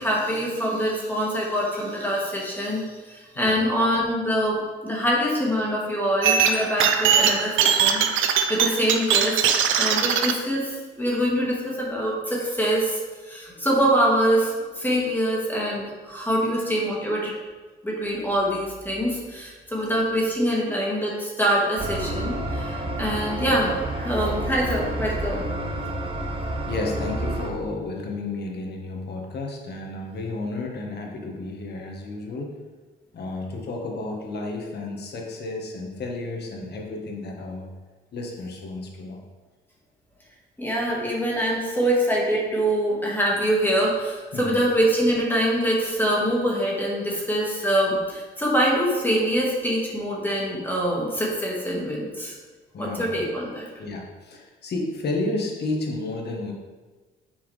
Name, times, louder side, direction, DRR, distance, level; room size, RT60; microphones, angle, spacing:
voice 1, 0.0-8.0 8.5-13.0 13.3-17.3 17.8-25.5 40.6-52.3 52.8-53.7, equal, 10° left, -4 dB, 1.8 m, -24 dB
sound 1, 6.2-10.3, right 7 dB, 80° right, 0.5 m, -21 dB
sound 2, 21.8-27.5, right 1 dB, 25° right, 0.9 m, -29 dB
voice 2, 26.7-32.5 33.1-37.7 38.1-39.2 44.3-44.6 52.7-53.1 53.8-56.5, left 2 dB, 55° left, 1 dB, 1.4 m, -32 dB
7.4 x 4.7 x 3.3 m, 1.3 s
cardioid pair, 90°, 20 cm